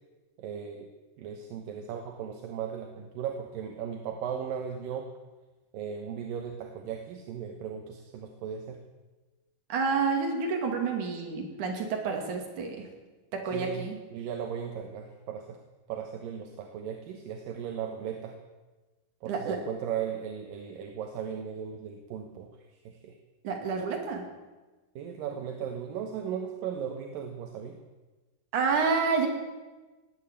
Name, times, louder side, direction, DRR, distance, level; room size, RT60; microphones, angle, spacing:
voice 1, 0.4-0.9 1.2-5.1 5.7-8.8 13.5-13.9 14.1-15.6 15.9-18.4 19.2-22.5 22.9-23.2 25.0-27.8, right 8 dB, 65° right, 4 dB, 2.5 m, -37 dB
voice 2, 9.7-12.9 13.3-14.0 19.3-19.6 23.4-24.3 28.5-29.3, right 5 dB, 50° right, 2 dB, 3.5 m, -29 dB
18.5 x 9.0 x 8.7 m, 1.2 s
omnidirectional pair, 4.8 m